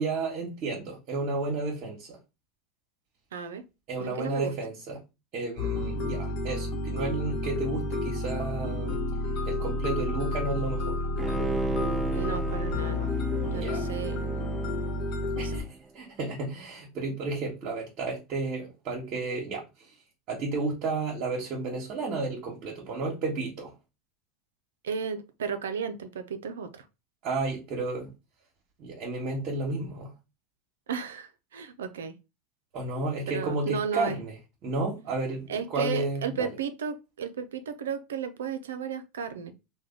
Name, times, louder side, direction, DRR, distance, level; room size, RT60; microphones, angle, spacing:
voice 1, 0.0-2.2 3.9-5.0 5.3-9.0 9.5-11.0 13.5-13.9 15.4-20.0 20.3-23.7 27.2-28.1 28.8-30.1 32.7-34.3 34.6-36.5, right 3 dB, 55° right, 1.1 m, -32 dB
voice 2, 3.3-3.7 4.0-4.5 12.1-13.1 13.5-14.2 15.4-15.6 24.8-26.8 30.9-32.1 33.3-34.2 35.5-39.5, right 6 dB, 90° right, 0.4 m, -34 dB
sound 1, 5.6-15.6, left 2 dB, 60° left, 1.0 m, -30 dB
Bowed string instrument, 11.2-15.8 16.2-16.3, right 4 dB, 20° right, 0.5 m, -35 dB
3.0 x 2.2 x 3.7 m
hypercardioid pair, 100°, 0 cm